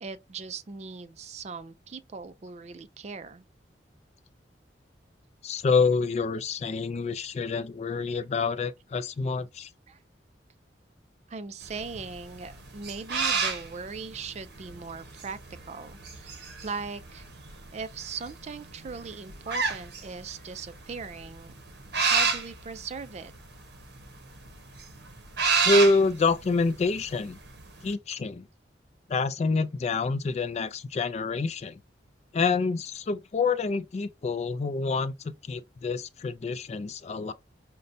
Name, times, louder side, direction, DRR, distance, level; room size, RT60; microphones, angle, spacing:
voice 1, 0.0-3.4 9.9-10.0 11.3-15.4 15.7-17.2 17.7-21.5 22.0-23.3, right 4 dB, 40° right, 0.4 m, -39 dB
voice 2, 5.4-9.7 25.6-27.4 27.8-28.4 29.1-31.8 32.3-37.3, left 3 dB, 40° left, 0.3 m, -27 dB
sound 1, 11.6-27.9, right 5 dB, 65° right, 0.9 m, -31 dB
5.2 x 2.2 x 2.6 m
head